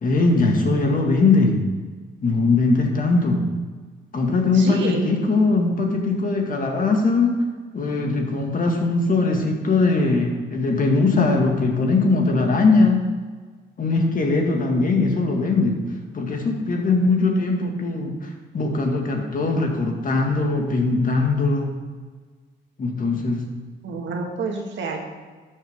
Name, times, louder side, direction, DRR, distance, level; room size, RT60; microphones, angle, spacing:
voice 1, 0.0-1.7 2.2-3.5 4.1-7.4 7.7-13.1 13.8-15.8 16.1-21.8 22.8-23.5, left 3 dB, 45° left, 2 dB, 1.9 m, -20 dB
voice 2, 4.5-5.1 23.8-25.1, right 3 dB, 70° right, 1 dB, 1.8 m, -28 dB
12.5 x 7.0 x 3.6 m, 1.4 s
cardioid pair, 90°, 20 cm